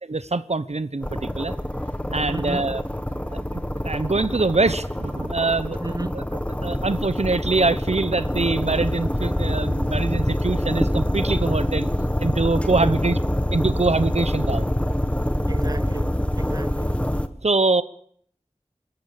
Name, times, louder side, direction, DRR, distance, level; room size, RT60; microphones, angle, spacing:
voice 1, 0.0-1.5 2.1-2.8 3.5-6.2 6.6-11.9 12.2-13.2 13.5-14.7 17.4-17.8, right 3 dB, 75° right, 1.0 m, -24 dB
sound 1, 1.0-17.3, equal, 10° left, 1.7 m, -25 dB
voice 2, 2.3-2.7 5.8-6.2 12.8-12.9 15.5-17.0, right 2 dB, 35° right, 1.0 m, -33 dB
25.5 x 14.0 x 8.7 m
wide cardioid pair, 40°, 11 cm